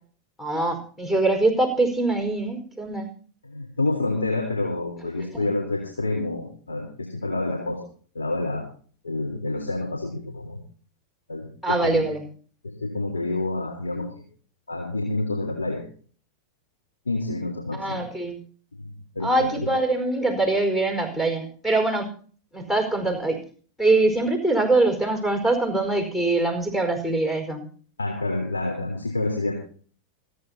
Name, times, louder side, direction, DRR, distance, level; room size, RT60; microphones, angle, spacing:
voice 1, 0.4-3.1 5.4-5.5 11.6-12.2 17.7-18.4 19.2-22.1 22.5-23.4 23.8-27.7, right 2 dB, 15° left, 2 dB, 4.8 m, -23 dB
voice 2, 3.4-7.8 8.1-8.6 9.0-10.6 11.3-12.1 12.6-14.1 14.7-15.8 17.1-18.0 18.8-19.7 28.0-29.5, left 2 dB, 75° left, -1 dB, 3.9 m, -28 dB
28.0 x 9.6 x 2.9 m, 0.43 s
figure-of-eight pair, 90°, 0 cm